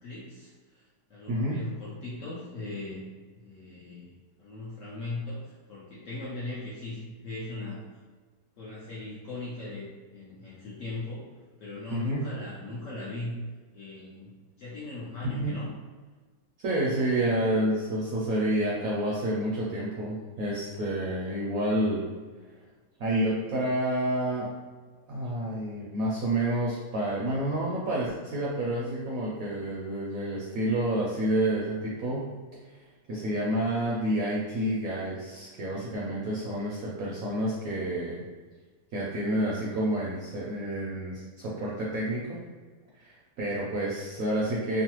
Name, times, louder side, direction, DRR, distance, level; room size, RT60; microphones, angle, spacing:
voice 1, 0.0-3.1 3.4-4.1 4.4-7.8 8.6-11.2 11.6-13.4 13.7-14.3 14.6-15.7, left 2 dB, 60° left, -7 dB, 0.8 m, -38 dB
voice 2, 1.3-1.6 11.9-12.2 15.2-15.5 16.6-22.1 23.0-24.5 25.1-32.3 33.1-38.2 38.9-42.4 42.9-44.8, right 1 dB, 70° right, -5 dB, 0.8 m, -29 dB
3.1 x 2.0 x 2.9 m, 1.4 s
omnidirectional pair, 1.9 m